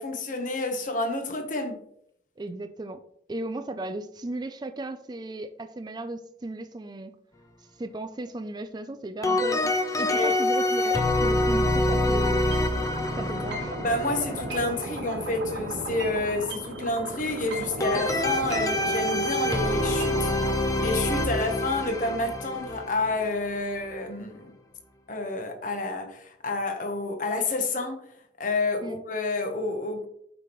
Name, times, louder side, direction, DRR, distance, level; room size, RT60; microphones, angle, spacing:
voice 1, 0.0-1.8 10.1-10.3 13.8-20.3 20.8-24.5 25.1-28.0 28.4-30.1, left 2 dB, 45° left, 5 dB, 1.1 m, -29 dB
voice 2, 2.4-3.0 3.3-7.2 7.8-12.6 13.2-13.7 28.8-29.0, right 2 dB, 20° right, 9 dB, 0.4 m, -36 dB
sound 1, 9.2-14.8 17.8-23.9, left 1 dB, 15° left, 0.6 m, -26 dB
sound 2, 12.5-20.5, right 2 dB, 70° right, 1.3 m, -35 dB
8.2 x 5.3 x 3.1 m, 0.71 s
head